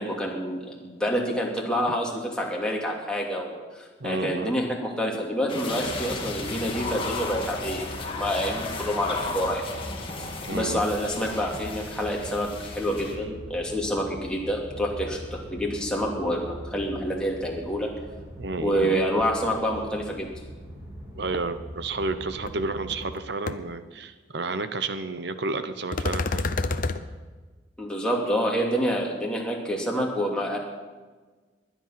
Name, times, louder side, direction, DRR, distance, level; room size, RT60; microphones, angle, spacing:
voice 1, 0.0-9.6 10.5-17.9 18.6-20.3 27.8-30.6, equal, 5° left, -2 dB, 2.7 m, -27 dB
voice 2, 4.0-4.5 10.4-10.8 18.4-19.0 21.2-26.5, right 3 dB, 65° right, 10 dB, 1.0 m, -31 dB
sound 1, 5.5-13.1, left 3 dB, 30° left, 2.0 m, -35 dB
sound 2, 5.8-23.0, equal, 15° right, 3.2 m, -42 dB
sound 3, 22.5-22.6 22.9-23.2 23.5-23.6 25.9-27.0, left 3 dB, 50° left, 0.7 m, -27 dB
20.5 x 10.5 x 5.9 m, 1.3 s
head